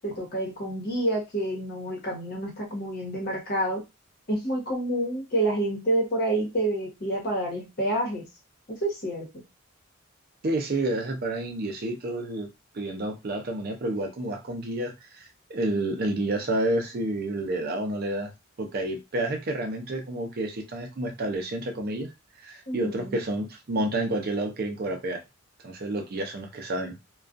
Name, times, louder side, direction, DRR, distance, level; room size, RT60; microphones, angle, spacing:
voice 1, 0.0-3.8 4.3-8.3 8.7-9.3 22.7-23.2, right 1 dB, 50° left, 1.1 m, -28 dB
voice 2, 10.4-12.5 12.7-18.3 18.6-22.1 22.4-25.2 25.6-26.9, right 1 dB, 50° right, 0.5 m, -29 dB
2.3 x 2.2 x 2.5 m
head